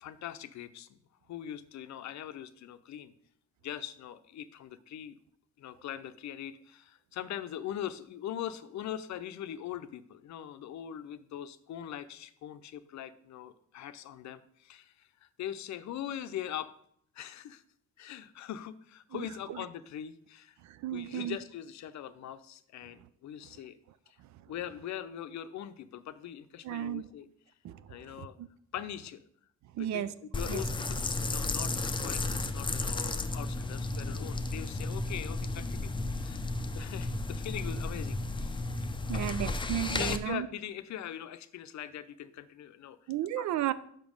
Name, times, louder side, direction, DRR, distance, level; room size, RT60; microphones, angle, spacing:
voice 1, 0.0-1.0 1.3-3.1 3.6-5.2 5.6-16.7 17.1-17.6 18.0-20.6 20.9-23.8 24.1-24.2 24.5-27.3 27.9-28.4 28.7-29.2 29.8-36.5 36.7-39.4 40.0-43.0 43.4-43.5, left 10 dB, 65° left, 12 dB, 0.6 m, -42 dB
voice 2, 19.1-19.6 20.6-21.4 26.6-27.1 27.6-28.5 29.7-30.1 30.5-30.6 39.1-40.5 43.1-43.7, right 11 dB, 65° right, 16 dB, 0.5 m, -34 dB
sound 1, 30.3-40.2, left 2 dB, 15° left, 0.5 m, -33 dB
5.8 x 5.1 x 5.2 m, 0.66 s
cardioid pair, 90°, 30 cm